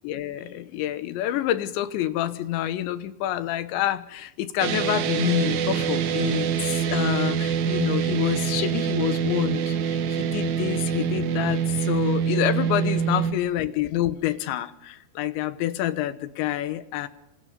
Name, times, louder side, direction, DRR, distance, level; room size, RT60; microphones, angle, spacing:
voice 1, 0.0-17.1, left 13 dB, 85° left, 12 dB, 3.4 m, -27 dB
sound 1, 4.6-13.3, right 8 dB, 90° right, 1.6 m, -25 dB
28.0 x 26.0 x 5.2 m, 0.79 s
omnidirectional pair, 5.0 m